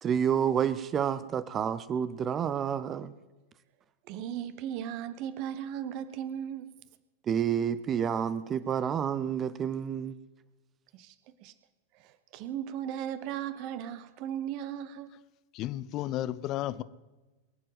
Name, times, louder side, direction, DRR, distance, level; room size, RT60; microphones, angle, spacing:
voice 1, 0.0-3.1 7.3-10.1, right 8 dB, 25° right, 0.6 m, -29 dB
voice 2, 4.1-6.7 10.9-11.1 11.4-11.5 11.9-15.1, right 10 dB, 45° right, 1.1 m, -37 dB
voice 3, 15.5-16.8, left 14 dB, 35° left, 0.7 m, -33 dB
22.5 x 7.7 x 7.6 m
figure-of-eight pair, 90°, 0 cm